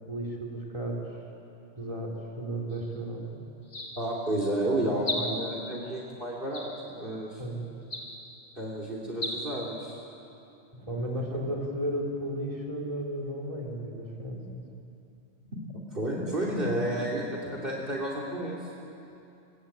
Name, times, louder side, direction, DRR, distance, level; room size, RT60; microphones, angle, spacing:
voice 1, 0.1-1.0 1.8-3.4 5.1-5.2 7.4-7.7 10.9-14.6, right 1 dB, 30° right, -2 dB, 3.9 m, -34 dB
sound 1, 2.7-3.0 3.6-4.2 5.0-5.6 6.5-7.1 7.8-8.4 9.1-9.4, left 1 dB, 80° left, 3.6 m, -36 dB
voice 2, 4.0-7.4 8.6-10.0 10.8-11.4 15.7-18.6, right 1 dB, 50° right, -2 dB, 3.4 m, -31 dB
25.0 x 22.5 x 8.9 m, 2.7 s
omnidirectional pair, 1.2 m